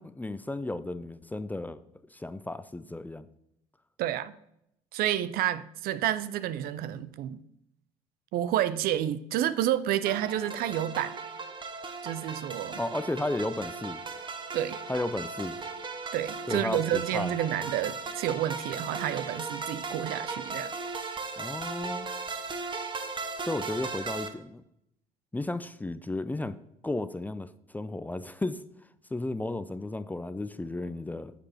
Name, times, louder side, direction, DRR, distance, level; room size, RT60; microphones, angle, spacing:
voice 1, 0.0-1.8 2.1-3.3 12.8-14.0 14.9-15.6 16.5-17.3 21.4-22.1 23.4-24.6 25.3-28.6 29.1-31.3, left 2 dB, 10° left, 13 dB, 0.4 m, -34 dB
voice 2, 4.0-4.3 4.9-7.4 8.3-11.1 12.0-12.8 14.5-14.8 16.1-20.7, right 12 dB, 60° right, 16 dB, 0.5 m, -29 dB
sound 1, 10.1-24.3, right 4 dB, 25° right, 0.9 m, -37 dB
9.3 x 6.7 x 3.0 m, 0.78 s
hypercardioid pair, 65°, 18 cm